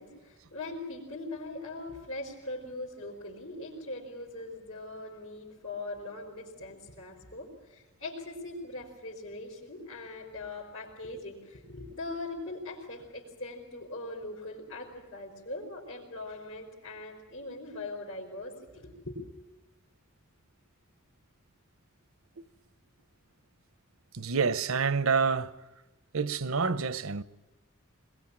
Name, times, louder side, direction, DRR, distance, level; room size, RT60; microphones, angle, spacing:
voice 1, 0.0-19.3, left 2 dB, 80° left, 4.9 m, -41 dB
voice 2, 24.1-25.6 26.1-27.2, right 5 dB, 80° right, 0.9 m, -28 dB
23.0 x 21.5 x 8.9 m
head